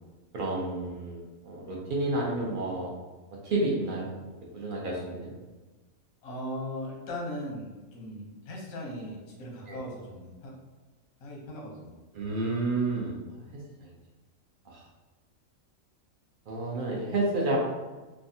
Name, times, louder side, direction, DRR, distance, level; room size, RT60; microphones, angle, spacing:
voice 1, 0.3-2.9 3.4-4.1 4.5-5.3 9.7-9.8 12.2-13.3 13.8-13.9 14.7-14.8 16.5-17.6, right 2 dB, 60° right, -3 dB, 0.6 m, -30 dB
voice 2, 6.2-10.5 11.2-12.0, left 1 dB, 90° left, -3 dB, 1.2 m, -38 dB
3.3 x 2.1 x 2.7 m, 1.2 s
omnidirectional pair, 1.4 m